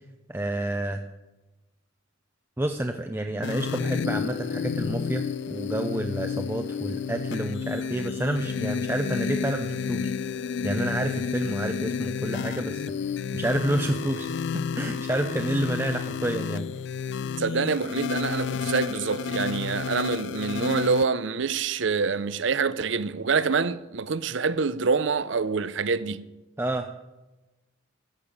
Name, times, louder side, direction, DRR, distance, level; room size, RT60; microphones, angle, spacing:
voice 1, 0.3-1.0 2.6-10.1 10.6-16.7 26.6-26.9, right 1 dB, 10° right, 0.5 m, -29 dB
sound 1, 3.4-21.0, left 6 dB, 60° left, 0.4 m, -31 dB
voice 2, 17.4-26.2, right 5 dB, 65° right, 0.6 m, -26 dB
13.5 x 7.0 x 8.5 m
head